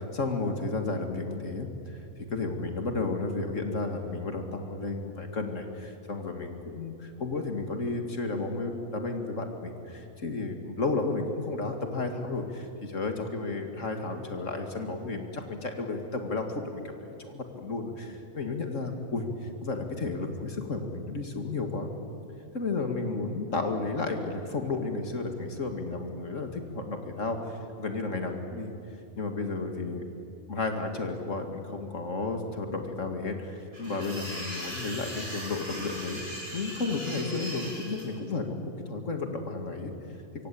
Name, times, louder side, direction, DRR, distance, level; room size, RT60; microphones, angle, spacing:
voice 1, 0.1-2.0 2.3-19.2 19.6-21.9 22.5-28.7 29.2-30.0 30.5-39.9, left 3 dB, 65° left, 5 dB, 2.4 m, -32 dB
sound 1, 33.7-38.0, equal, 45° right, 8.0 m, -39 dB
25.0 x 24.5 x 8.5 m, 2.7 s
omnidirectional pair, 1.4 m